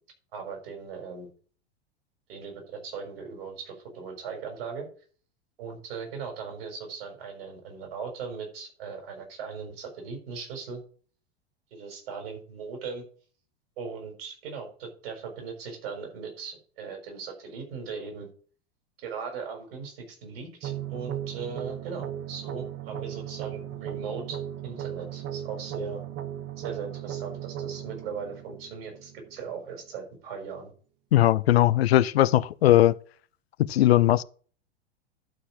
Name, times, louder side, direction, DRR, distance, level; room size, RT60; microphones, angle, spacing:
voice 1, 0.3-1.3 2.3-4.9 5.6-10.8 11.7-13.0 13.8-18.3 19.0-26.0 26.6-30.7, right 5 dB, 65° right, 6.1 m, -38 dB
sound 1, 20.6-29.6, right 11 dB, 40° right, 1.1 m, -37 dB
voice 2, 31.1-33.0 33.6-34.2, left 14 dB, 75° left, 0.7 m, -19 dB
11.5 x 4.8 x 7.5 m
hypercardioid pair, 95°, 32 cm